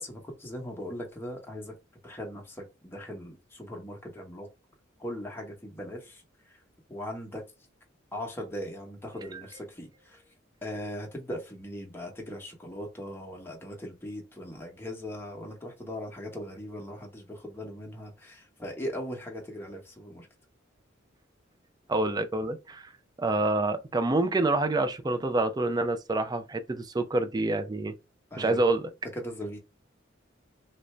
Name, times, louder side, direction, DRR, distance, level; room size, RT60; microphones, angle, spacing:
voice 1, 0.0-1.7 2.0-4.5 5.0-6.2 6.9-7.4 8.1-10.2 10.6-20.3 28.3-28.6 29.1-29.6, equal, 10° left, 0.9 m, -39 dB
voice 2, 21.9-22.9 23.2-27.9 28.4-28.9, right 2 dB, 20° right, 0.4 m, -27 dB
3.2 x 2.5 x 3.1 m
head